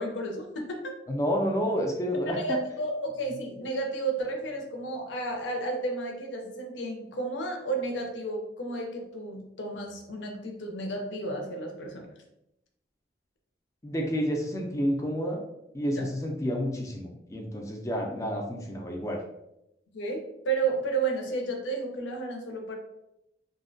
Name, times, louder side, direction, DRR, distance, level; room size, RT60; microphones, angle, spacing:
voice 1, 0.0-0.9 2.2-12.1 15.9-16.0 19.9-22.8, right 2 dB, 90° left, 2 dB, 0.5 m, -32 dB
voice 2, 1.1-2.6 13.8-15.4 15.7-19.2, equal, 15° left, 1 dB, 0.3 m, -29 dB
2.6 x 2.1 x 2.6 m, 0.86 s
head